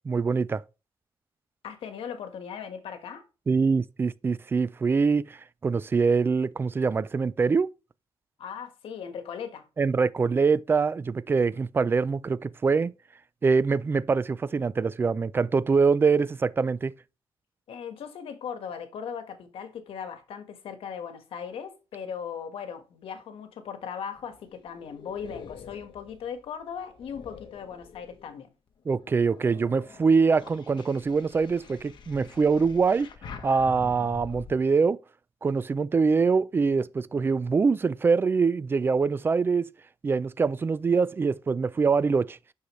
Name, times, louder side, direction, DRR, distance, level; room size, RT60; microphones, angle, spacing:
voice 1, 0.0-0.6 3.5-7.7 9.8-12.9 13.4-16.9 28.9-33.1 33.4-35.0 35.4-39.7 40.0-42.4, right 5 dB, 25° right, 0.3 m, -24 dB
voice 2, 1.6-3.3 8.4-9.7 17.7-28.5, left 7 dB, 80° left, 1.5 m, -38 dB
sound 1, 24.1-28.4 28.9-34.5, left 5 dB, 55° left, 1.3 m, -46 dB
9.7 x 6.5 x 3.1 m
wide cardioid pair, 155°, 9 cm